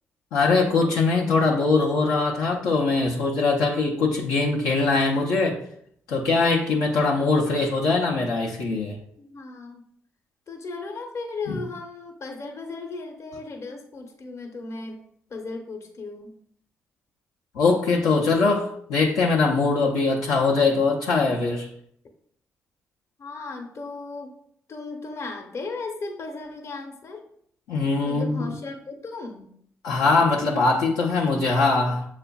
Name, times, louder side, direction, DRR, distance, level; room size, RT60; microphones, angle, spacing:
voice 1, 0.3-5.6 6.1-9.0 11.5-11.6 17.5-21.7 27.7-28.5 29.8-32.0, left 3 dB, 85° left, -4 dB, 0.6 m, -22 dB
voice 2, 9.2-9.8 10.5-15.0 15.3-16.3 23.2-24.3 24.7-27.2 28.0-29.5, left 3 dB, 50° left, 3 dB, 0.9 m, -36 dB
6.8 x 2.4 x 2.3 m, 0.66 s
supercardioid pair, 50°, 6 cm